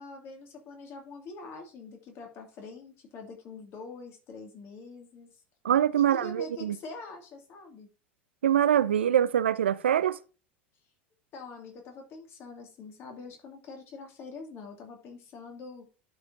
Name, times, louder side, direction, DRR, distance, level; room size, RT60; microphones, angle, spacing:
voice 1, 0.0-5.3 5.9-7.9 11.3-16.0, left 3 dB, 40° left, 2.3 m, -44 dB
voice 2, 5.6-6.8 8.4-10.2, right 10 dB, 75° right, 0.4 m, -24 dB
11.0 x 5.0 x 2.7 m
figure-of-eight pair, 80°, 6 cm